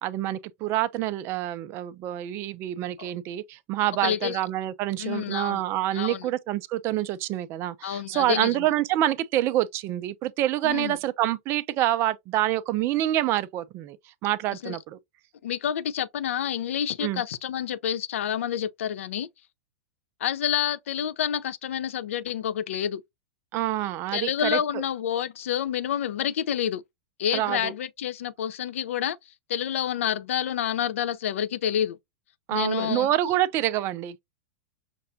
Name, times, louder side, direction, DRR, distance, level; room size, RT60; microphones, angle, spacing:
voice 1, 0.0-14.0 14.2-15.0 17.0-17.2 23.5-24.6 27.3-27.7 32.5-34.2, right 14 dB, 35° right, 0.4 m, -27 dB
voice 2, 4.0-4.4 5.0-5.6 5.9-6.3 7.8-8.6 10.6-11.0 14.6-14.8 15.4-19.3 20.2-23.0 24.1-26.8 27.2-29.2 29.5-32.0 32.5-33.1, left 9 dB, 80° left, 0.4 m, -28 dB
5.8 x 2.2 x 2.6 m
hypercardioid pair, 125°, 7 cm